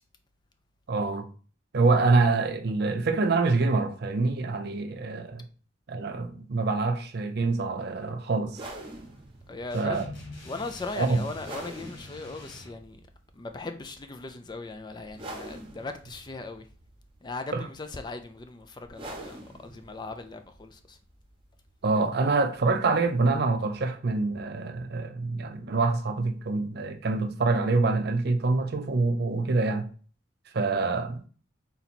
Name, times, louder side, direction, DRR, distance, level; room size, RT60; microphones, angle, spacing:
voice 1, 0.9-1.2 1.7-5.4 5.9-8.6 9.7-10.1 11.0-11.2 17.5-17.6 21.8-29.9 30.5-31.2, right 3 dB, 55° right, 0.5 m, -26 dB
sound 1, 8.4-23.8, right 1 dB, 25° right, 0.9 m, -47 dB
voice 2, 9.5-10.0 10.4-13.0 13.3-16.7 17.2-21.0, left 3 dB, 20° left, 0.4 m, -38 dB
sound 2, 9.7-12.8, left 2 dB, 65° left, 1.7 m, -44 dB
3.9 x 2.9 x 4.2 m
head